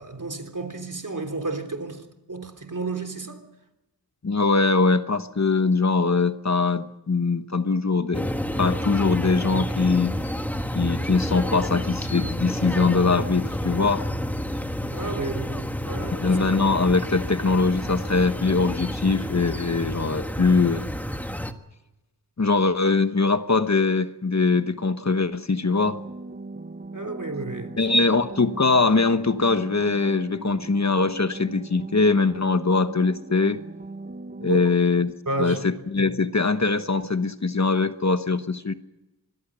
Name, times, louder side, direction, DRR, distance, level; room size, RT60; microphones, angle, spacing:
voice 1, 0.0-3.4 14.9-16.3 26.9-27.8 34.5-34.6 35.3-35.6, right 2 dB, 50° right, 3.5 m, -32 dB
voice 2, 4.2-8.3 8.6-10.1 10.7-14.0 16.2-20.9 22.4-26.0 27.8-33.6 34.4-35.1 35.4-38.7, left 4 dB, 40° left, 1.2 m, -22 dB
sound 1, 8.1-21.5, equal, 5° left, 1.5 m, -29 dB
sound 2, 25.6-34.6, right 3 dB, 25° right, 1.1 m, -39 dB
26.0 x 20.5 x 6.3 m
wide cardioid pair, 75°, 40 cm